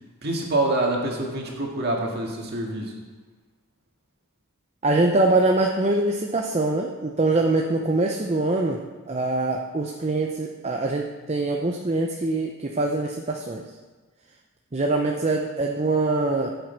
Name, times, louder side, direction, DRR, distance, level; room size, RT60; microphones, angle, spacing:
voice 1, 0.2-2.9, right 2 dB, 45° right, -1 dB, 2.0 m, -26 dB
voice 2, 4.8-13.6 14.7-16.5, right 2 dB, 30° right, 2 dB, 0.6 m, -23 dB
14.5 x 7.9 x 4.6 m, 1.3 s
head